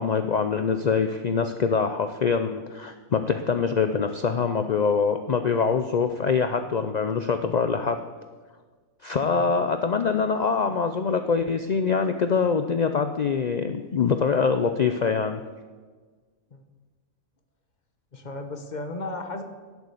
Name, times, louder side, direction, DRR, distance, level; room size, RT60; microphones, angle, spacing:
voice 1, 0.0-8.0 9.0-15.4, left 5 dB, 70° left, 8 dB, 0.4 m, -24 dB
voice 2, 18.1-19.4, left 2 dB, 35° left, 6 dB, 1.1 m, -35 dB
12.5 x 7.1 x 8.2 m, 1.4 s
omnidirectional pair, 1.5 m